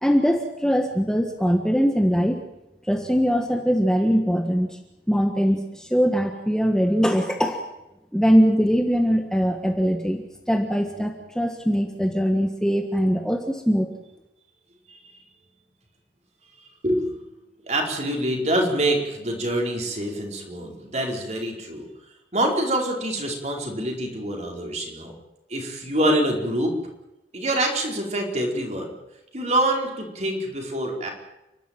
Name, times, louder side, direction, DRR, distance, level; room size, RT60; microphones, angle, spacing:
voice 1, 0.0-2.4 2.8-4.8 5.1-7.6 8.1-13.9, equal, 5° left, 4 dB, 1.5 m, -21 dB
voice 2, 16.8-17.2 17.6-21.9 22.3-25.1 25.5-26.7 27.3-28.9 29.3-31.1, right 1 dB, 40° right, 1 dB, 4.7 m, -25 dB
30.0 x 12.5 x 9.1 m, 0.94 s
head